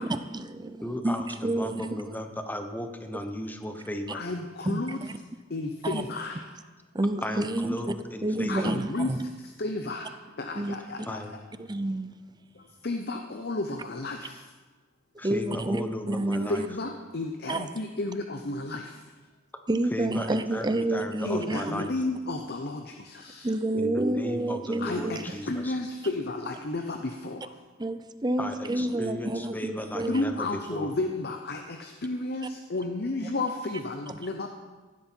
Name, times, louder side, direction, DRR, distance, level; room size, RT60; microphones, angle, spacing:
voice 1, 0.0-2.2 3.1-3.2 4.6-5.1 5.8-6.1 6.9-7.8 8.2-9.2 10.6-10.8 11.6-12.1 15.2-16.7 17.5-17.7 19.7-21.9 23.4-25.4 27.8-30.2 34.1-34.2, right 1 dB, 20° right, 11 dB, 0.6 m, -29 dB
voice 2, 0.8-4.2 7.2-8.7 11.1-11.4 15.2-16.6 19.9-21.9 23.7-25.8 28.4-30.9, left 1 dB, 10° left, 6 dB, 1.0 m, -35 dB
voice 3, 4.1-5.0 5.5-6.5 8.5-9.1 9.4-10.1 10.4-11.2 12.6-14.4 16.5-19.0 21.2-23.5 24.8-27.6 30.1-34.5, left 2 dB, 55° left, 5 dB, 0.8 m, -32 dB
16.0 x 11.5 x 4.5 m, 1.3 s
head